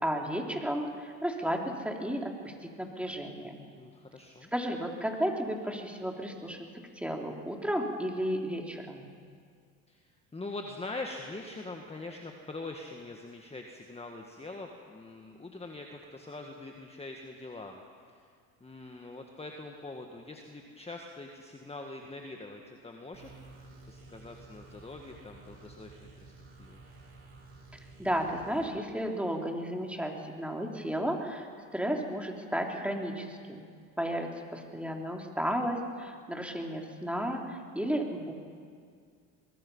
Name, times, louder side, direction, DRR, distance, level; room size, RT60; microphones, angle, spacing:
voice 1, 0.0-3.7 4.5-6.6 7.0-9.1 28.0-33.7 34.0-38.3, equal, 5° right, 1 dB, 3.4 m, -33 dB
voice 2, 3.7-4.5 9.9-10.0 10.3-18.2 18.6-23.3 23.9-26.3 26.6-26.8, left 2 dB, 15° left, 2 dB, 1.9 m, -43 dB
sound 1, 23.1-28.7, right 3 dB, 35° right, 6.9 m, -52 dB
23.0 x 21.5 x 5.7 m, 2.1 s
supercardioid pair, 85°, 41 cm